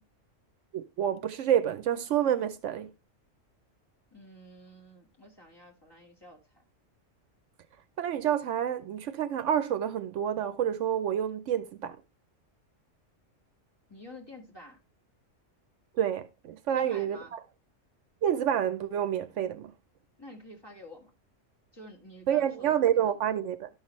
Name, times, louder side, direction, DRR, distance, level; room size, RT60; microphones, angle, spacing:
voice 1, 0.7-2.9 8.0-12.0 16.0-17.4 18.2-19.7 22.3-23.7, right 10 dB, 70° right, 0.9 m, -28 dB
voice 2, 4.1-6.6 13.9-14.8 16.7-17.3 20.2-21.1 21.7-23.2, left 1 dB, 20° left, 1.7 m, -49 dB
12.5 x 5.7 x 3.1 m
omnidirectional pair, 1.3 m